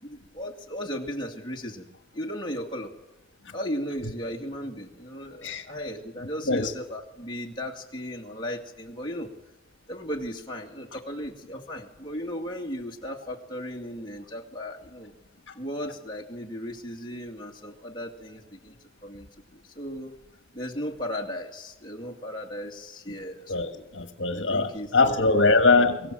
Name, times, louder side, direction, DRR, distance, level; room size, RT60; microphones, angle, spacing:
voice 1, 0.0-1.9 2.1-2.9 3.5-9.3 9.9-15.1 15.6-18.8 19.0-20.1 20.5-23.9 24.3-25.4, equal, 25° left, 2.4 m, -36 dB
voice 2, 23.5-26.1, left 3 dB, 70° left, 1.5 m, -22 dB
24.0 x 15.0 x 7.7 m
head